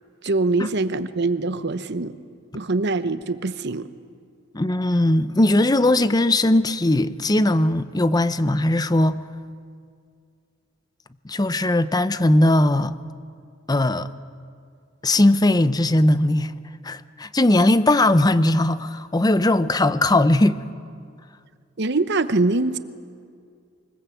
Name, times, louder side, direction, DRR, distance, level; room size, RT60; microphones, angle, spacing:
voice 1, 0.2-2.1 2.5-3.9 21.8-22.8, right 3 dB, 55° right, 0.9 m, -23 dB
voice 2, 4.5-9.2 11.2-13.0 13.7-14.1 15.0-16.5 16.8-20.6, left 1 dB, 20° left, 0.7 m, -19 dB
23.5 x 20.5 x 8.5 m
head